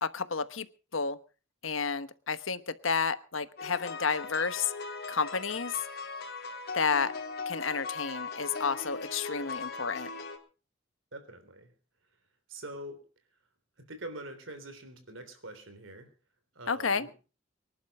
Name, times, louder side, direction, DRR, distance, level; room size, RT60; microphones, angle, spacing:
voice 1, 0.0-0.7 0.9-1.2 1.6-4.7 5.1-5.7 6.7-7.1 7.5-10.1 16.7-17.1, left 5 dB, 85° left, 1.2 m, -31 dB
sound 1, 3.6-10.4, left 4 dB, 55° left, 3.6 m, -39 dB
voice 2, 11.1-11.7 12.5-13.0 13.8-16.1 16.6-17.1, right 1 dB, 75° right, 3.6 m, -44 dB
24.5 x 11.5 x 4.3 m
head